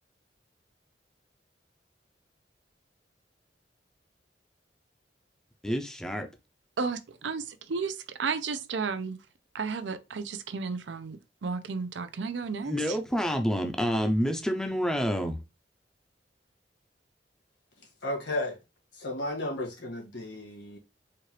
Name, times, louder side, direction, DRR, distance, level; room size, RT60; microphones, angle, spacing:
voice 1, 5.6-6.3 12.6-15.4, equal, 5° left, 0.5 m, -28 dB
voice 2, 6.8-9.2 9.5-13.0, right 5 dB, 80° right, 0.5 m, -33 dB
voice 3, 18.0-18.6 18.9-20.8, left 1 dB, 75° left, 1.9 m, -33 dB
4.4 x 2.4 x 3.2 m
head